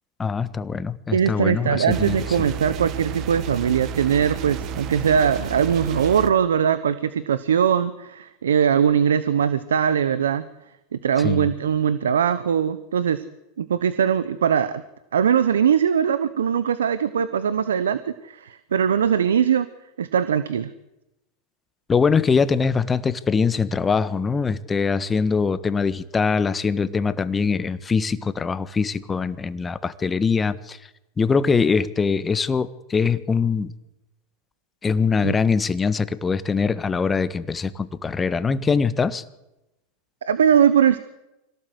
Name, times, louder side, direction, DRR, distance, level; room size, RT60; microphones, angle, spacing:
voice 1, 0.2-2.1 11.2-11.5 21.9-30.8 31.2-33.7 34.8-39.2, left 5 dB, 20° left, 13 dB, 1.4 m, -22 dB
voice 2, 1.1-10.4 10.9-13.2 13.6-14.8 15.1-19.7 20.0-20.7 35.2-35.4 40.2-41.0, right 8 dB, 85° right, 14 dB, 1.1 m, -21 dB
sound 1, 1.9-6.3, right 6 dB, 45° right, 1.7 m, -32 dB
25.5 x 17.5 x 8.1 m, 0.95 s
hypercardioid pair, 100°, 0 cm